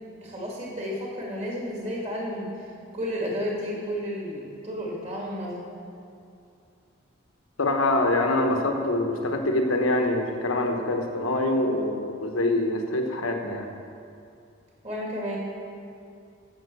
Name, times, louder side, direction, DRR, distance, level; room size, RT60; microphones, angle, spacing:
voice 1, 0.2-2.7 2.9-5.6 14.8-15.4, equal, 30° right, -4 dB, 2.3 m, -32 dB
voice 2, 7.6-13.7, left 2 dB, 90° left, 3 dB, 1.2 m, -25 dB
9.5 x 7.4 x 6.9 m, 2.5 s
head